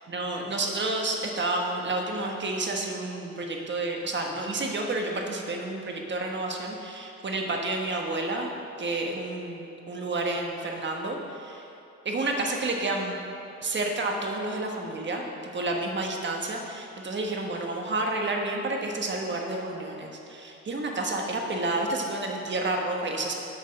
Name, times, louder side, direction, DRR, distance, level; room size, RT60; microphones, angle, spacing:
voice 1, 0.0-8.5 8.8-11.6 12.0-13.2 13.6-23.3, right 2 dB, 40° right, 1 dB, 1.3 m, -30 dB
8.1 x 5.4 x 6.4 m, 2.8 s
cardioid pair, 90°, 30 cm